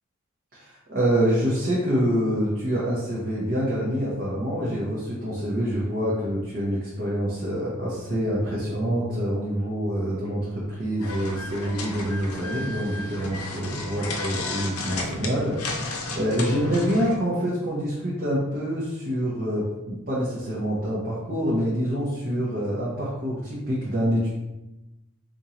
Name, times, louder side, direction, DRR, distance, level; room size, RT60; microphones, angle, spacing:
voice 1, 0.5-24.3, equal, 45° right, -7 dB, 0.7 m, -26 dB
sound 1, 11.0-17.2, left 3 dB, 85° left, 0.6 m, -33 dB
4.4 x 2.6 x 2.9 m, 1.0 s
head